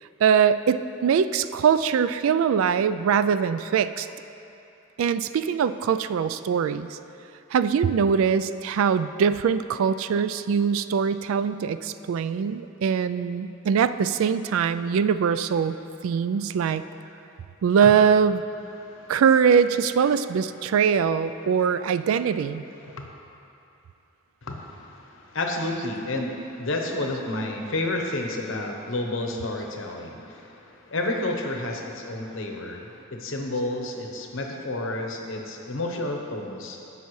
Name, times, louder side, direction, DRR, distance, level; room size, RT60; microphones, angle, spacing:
voice 1, 0.2-4.1 5.0-6.9 7.5-15.8 16.0-16.8 17.6-18.4 19.1-22.6, right 7 dB, 75° right, 13 dB, 0.3 m, -22 dB
voice 2, 18.8-19.1 22.8-23.1 24.4-36.8, left 2 dB, 65° left, 2 dB, 0.9 m, -31 dB
15.5 x 5.6 x 3.2 m, 2.8 s
head